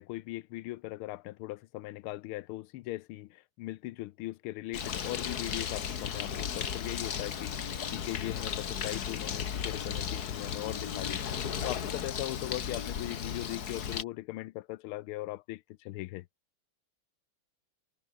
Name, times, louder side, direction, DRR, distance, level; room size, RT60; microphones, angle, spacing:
voice 1, 0.0-16.3, left 17 dB, 80° left, 1.5 m, -39 dB
Bird, 4.7-14.0, left 8 dB, 50° left, 1.7 m, -35 dB
omnidirectional pair, 2.4 m